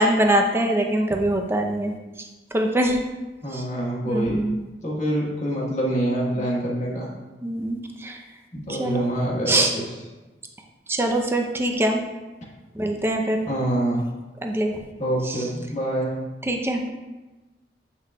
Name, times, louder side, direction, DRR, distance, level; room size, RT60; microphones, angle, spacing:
voice 1, 0.0-1.9 2.5-3.0 3.5-3.6 4.1-4.7 7.4-8.2 8.7-9.1 9.5-9.7 10.9-12.0 12.8-13.4 14.4-14.7 15.3-15.4 16.4-16.9, right 1 dB, 15° right, 3 dB, 0.5 m, -23 dB
voice 2, 3.4-4.4 4.8-7.1 8.5-9.8 13.4-14.0 15.0-16.2, right 1 dB, 40° left, -4 dB, 1.3 m, -25 dB
7.7 x 5.9 x 2.2 m, 1.2 s
head